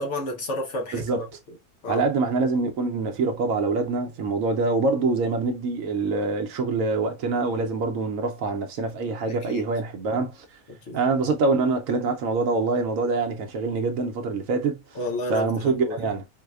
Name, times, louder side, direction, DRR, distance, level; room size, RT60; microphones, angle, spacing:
voice 1, 0.0-1.0 1.8-2.0 9.5-9.6 10.9-11.0 15.0-15.9, left 1 dB, 55° left, 1.0 m, -30 dB
voice 2, 0.9-1.3 1.9-10.5 10.9-14.8 15.3-16.3, right 3 dB, 70° right, 1.0 m, -25 dB
4.7 x 2.1 x 2.3 m
omnidirectional pair, 1.6 m